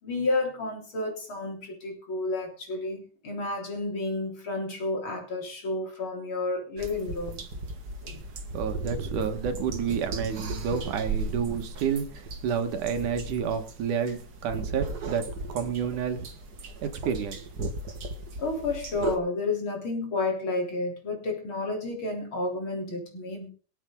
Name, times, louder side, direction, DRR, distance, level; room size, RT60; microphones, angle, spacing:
voice 1, 0.0-7.5 8.0-8.2 18.4-23.5, left 2 dB, 40° left, 1 dB, 4.3 m, -31 dB
sound 1, 6.8-19.2, right 3 dB, 40° right, 1.7 m, -36 dB
voice 2, 8.5-16.3 16.8-17.5, right 7 dB, 85° right, 7 dB, 3.1 m, -30 dB
23.5 x 8.3 x 3.8 m, 0.37 s
omnidirectional pair, 3.4 m